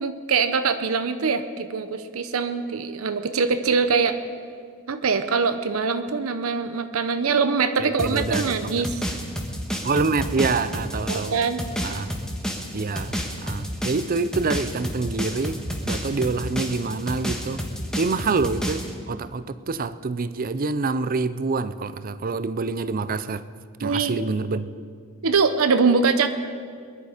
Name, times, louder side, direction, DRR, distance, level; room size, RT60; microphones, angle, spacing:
voice 1, 0.0-4.2 4.9-9.0 11.1-11.6 11.9-12.0 23.8-24.2 25.2-26.3, right 5 dB, 80° right, 9 dB, 0.7 m, -23 dB
voice 2, 7.8-8.8 9.8-11.3 11.8-12.1 12.7-13.1 13.4-15.6 15.9-17.7 17.9-23.4 23.8-24.8, right 4 dB, 40° right, 14 dB, 0.5 m, -26 dB
sound 1, 8.0-18.9, equal, 5° left, 1.5 m, -30 dB
21.5 x 11.0 x 5.0 m, 2.1 s
head